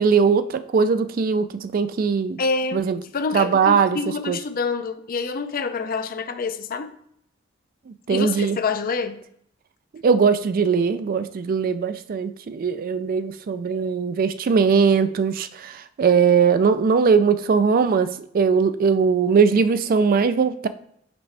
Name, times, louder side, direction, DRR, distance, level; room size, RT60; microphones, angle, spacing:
voice 1, 0.0-2.4 2.7-3.0 3.3-4.0 4.3-4.4 7.9-8.6 10.0-20.7, right 5 dB, 45° right, 0.3 m, -20 dB
voice 2, 2.4-2.8 3.1-6.9 8.1-9.2, left 4 dB, 45° left, 0.5 m, -27 dB
5.9 x 5.3 x 3.3 m
head